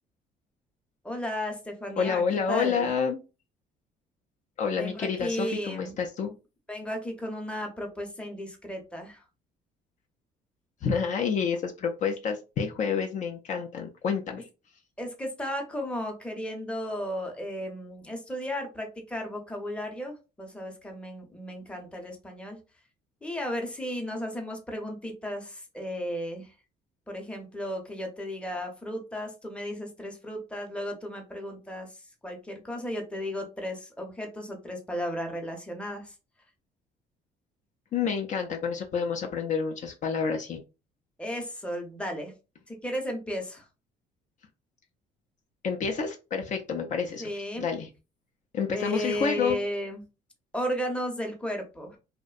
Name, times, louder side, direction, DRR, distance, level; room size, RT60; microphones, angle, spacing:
voice 1, 1.0-2.2 2.5-2.9 4.7-6.0 6.7-9.2 15.0-22.6 23.2-26.5 27.1-31.9 32.2-36.1 41.2-42.3 42.7-43.7 47.2-47.7 48.7-50.0 50.5-52.0, equal, 5° left, 2 dB, 0.6 m, -34 dB
voice 2, 2.0-3.2 4.6-6.3 10.8-14.5 37.9-40.6 45.6-47.9 48.5-49.6, left 6 dB, 50° left, 2 dB, 0.4 m, -29 dB
2.6 x 2.0 x 2.3 m, 0.30 s
cardioid pair, 110°, 17 cm